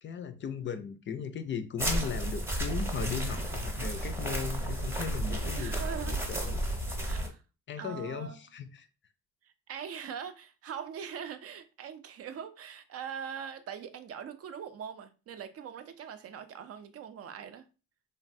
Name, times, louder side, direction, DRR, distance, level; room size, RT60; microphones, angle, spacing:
voice 1, 0.0-6.6 7.7-8.9, left 7 dB, 40° left, 0.4 m, -37 dB
sound 1, 1.8-7.3, right 1 dB, 10° right, 0.7 m, -32 dB
voice 2, 5.6-6.3 7.0-7.4 7.8-8.4 9.4-17.7, right 8 dB, 50° right, 0.4 m, -42 dB
3.2 x 2.2 x 2.6 m
cardioid pair, 90°, 30 cm